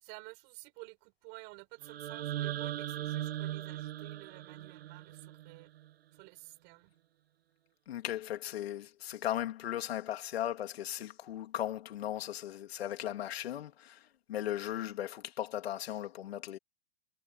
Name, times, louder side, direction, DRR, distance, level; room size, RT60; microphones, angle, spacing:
voice 1, 0.0-5.7 6.1-6.9, right 31 dB, 40° right, 5.2 m, -52 dB
sound 1, 1.8-5.9, right 13 dB, 80° right, 2.2 m, -39 dB
voice 2, 7.9-16.6, left 12 dB, 80° left, 3.2 m, -37 dB
supercardioid pair, 155°, 30 cm